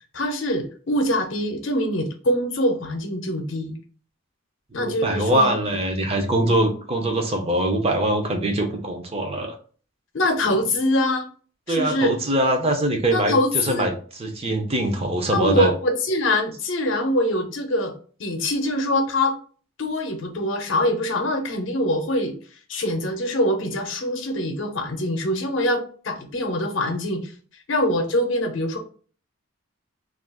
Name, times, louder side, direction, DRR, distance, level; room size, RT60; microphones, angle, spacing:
voice 1, 0.1-3.8 4.7-5.5 10.1-11.3 11.7-12.2 13.1-13.9 15.3-17.9 18.2-19.3 19.8-22.3 22.7-27.3 27.7-28.8, left 1 dB, 60° left, 4 dB, 0.6 m, -24 dB
voice 2, 4.8-9.5 11.7-15.7, right 1 dB, 30° right, 3 dB, 0.5 m, -23 dB
2.4 x 2.3 x 3.5 m, 0.42 s
head